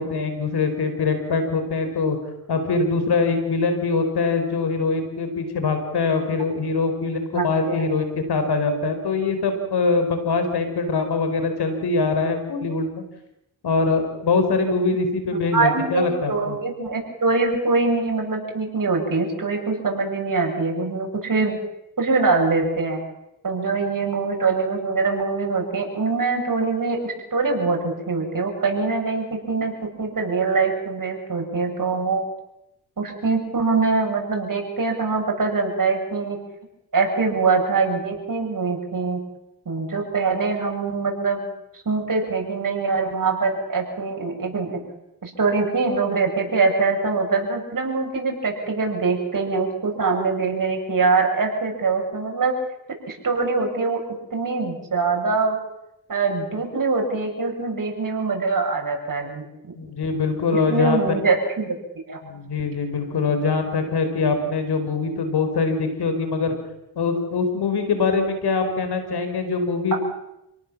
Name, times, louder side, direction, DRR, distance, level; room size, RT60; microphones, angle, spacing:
voice 1, 0.0-2.2 2.5-13.0 13.6-16.6 59.8-61.2 62.2-66.5 66.9-69.9, left 4 dB, 85° left, 7 dB, 4.6 m, -23 dB
voice 2, 7.3-7.9 15.3-21.6 22.0-23.0 23.4-29.7 30.0-32.2 33.0-36.4 36.9-39.2 39.7-41.5 41.9-44.8 45.2-52.5 53.1-54.0 54.3-55.6 56.1-59.4 60.7-61.8 62.1-62.2 69.9-70.0, right 4 dB, 55° right, 1 dB, 7.5 m, -23 dB
28.5 x 18.0 x 7.4 m, 0.87 s
cardioid pair, 55°, 38 cm